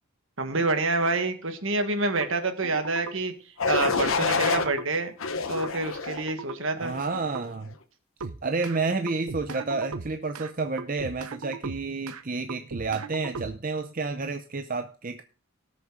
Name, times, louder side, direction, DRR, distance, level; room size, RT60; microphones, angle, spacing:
voice 1, 0.4-5.1 5.5-6.9, right 3 dB, 65° right, 7 dB, 1.5 m, -27 dB
sound 1, 2.2-2.3 2.6-3.2 3.9-4.0 4.4-4.9 5.6-5.7 6.1-6.6 7.1-7.4 8.2-8.8 9.1-10.5 10.8-12.2 12.5-13.8, right 4 dB, 90° right, 0.8 m, -38 dB
sound 2, 3.6-4.7 5.2-6.2 6.8-7.2, left 4 dB, 70° left, 1.0 m, -27 dB
voice 2, 6.8-7.8 8.4-15.2, right 3 dB, 40° right, 7 dB, 0.6 m, -30 dB
18.0 x 6.6 x 3.8 m, 0.37 s
head